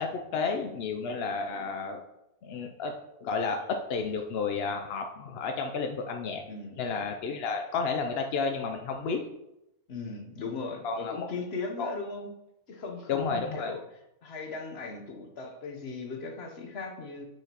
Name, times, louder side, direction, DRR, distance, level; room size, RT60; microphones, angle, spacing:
voice 1, 0.0-2.0 2.4-2.9 3.2-6.4 6.8-9.2 10.8-11.3 11.8-11.9 13.1-13.7, left 4 dB, 65° left, 4 dB, 0.6 m, -31 dB
voice 2, 6.5-6.8 9.9-12.3 12.7-13.8 14.2-17.3, left 4 dB, 50° left, 3 dB, 1.0 m, -38 dB
7.7 x 6.0 x 2.9 m, 0.87 s
omnidirectional pair, 1.6 m